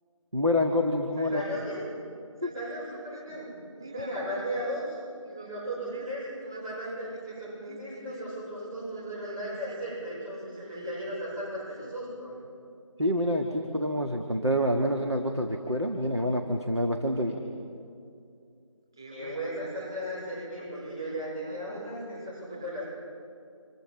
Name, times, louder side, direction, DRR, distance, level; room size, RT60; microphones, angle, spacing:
voice 1, 0.3-1.4 13.0-17.4, equal, 55° right, 2 dB, 1.7 m, -27 dB
voice 2, 1.2-1.9 2.4-4.9 5.2-12.3 18.9-22.7, equal, 5° right, -12 dB, 4.1 m, -36 dB
30.0 x 26.5 x 5.6 m, 2.4 s
figure-of-eight pair, 175°, 17 cm